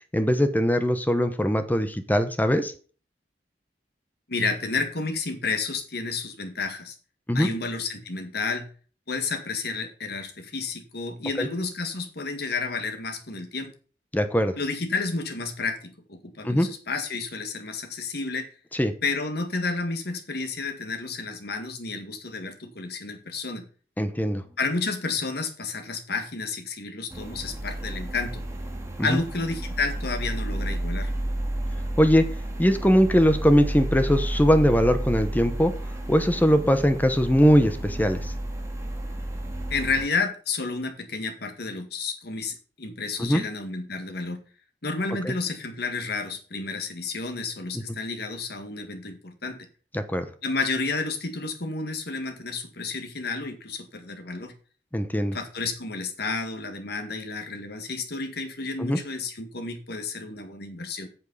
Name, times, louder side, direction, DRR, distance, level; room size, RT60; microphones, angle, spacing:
voice 1, 0.1-2.7 7.3-7.5 11.4-11.5 14.1-14.5 16.4-16.7 18.8-18.9 24.0-24.4 29.0-29.2 32.0-32.3 32.6-35.7 36.1-38.2 43.2-43.4 45.2-45.3 49.9-50.3 54.9-55.4 58.8-59.0, equal, 10° left, 9 dB, 0.9 m, -21 dB
voice 2, 4.3-7.0 7.3-8.7 9.1-13.7 14.6-18.5 19.0-23.7 24.6-28.4 29.0-31.1 39.7-44.4 44.8-49.7 50.4-54.5 55.3-61.1, left 4 dB, 60° left, 7 dB, 1.8 m, -31 dB
sound 1, 27.1-40.1, right 1 dB, 15° right, 1.9 m, -31 dB
8.4 x 7.3 x 5.5 m, 0.40 s
head